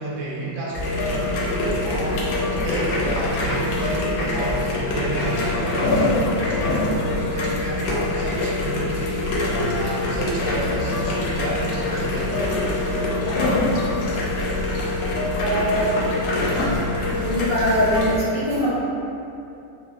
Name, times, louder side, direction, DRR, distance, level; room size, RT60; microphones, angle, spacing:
voice 1, 0.0-2.2 2.5-6.1 6.5-9.3 9.7-12.6, right 2 dB, 70° right, -6 dB, 0.9 m, -31 dB
sound 1, 0.7-18.2, left 2 dB, 85° left, 1.0 m, -24 dB
voice 2, 15.4-16.0 17.2-18.7, equal, 45° left, -14 dB, 0.4 m, -22 dB
3.5 x 2.4 x 2.3 m, 2.7 s
omnidirectional pair, 1.5 m